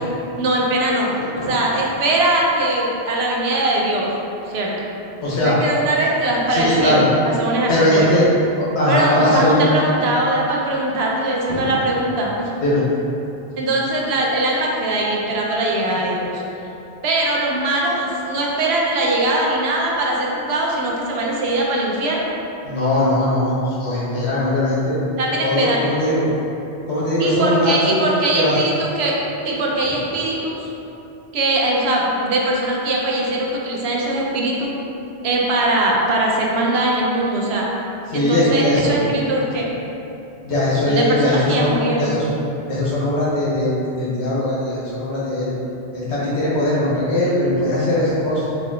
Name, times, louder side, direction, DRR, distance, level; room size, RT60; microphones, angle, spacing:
voice 1, 0.4-1.1 1.4-4.1 4.5-4.7 5.4-7.0 7.4-8.1 8.9-12.5 13.6-16.4 17.0-22.3 25.2-25.8 27.2-29.2 29.4-30.6 31.3-34.7 35.2-37.7 38.1-39.7 40.9-42.2, right 1 dB, 75° right, -2 dB, 0.8 m, -21 dB
voice 2, 1.1-1.6 5.2-5.6 6.5-7.1 7.7-8.3 8.6-9.6 11.5-11.8 12.6-12.9 22.6-25.0 25.4-26.2 26.9-28.0 28.3-28.5 38.1-39.0 40.4-42.3 42.7-45.5 45.9-48.4, left 1 dB, 75° left, -8 dB, 1.2 m, -20 dB
4.0 x 2.6 x 2.6 m, 2.8 s
omnidirectional pair, 1.1 m